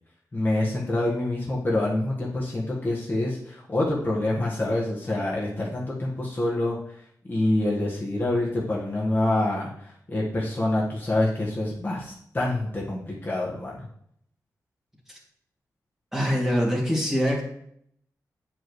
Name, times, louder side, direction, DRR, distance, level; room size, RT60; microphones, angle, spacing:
voice 1, 0.3-6.8 7.3-13.9, left 1 dB, 30° left, -5 dB, 1.5 m, -26 dB
voice 2, 16.1-17.4, equal, 5° right, -3 dB, 2.4 m, -24 dB
9.0 x 4.8 x 3.2 m, 0.70 s
cardioid pair, 85°, 7 cm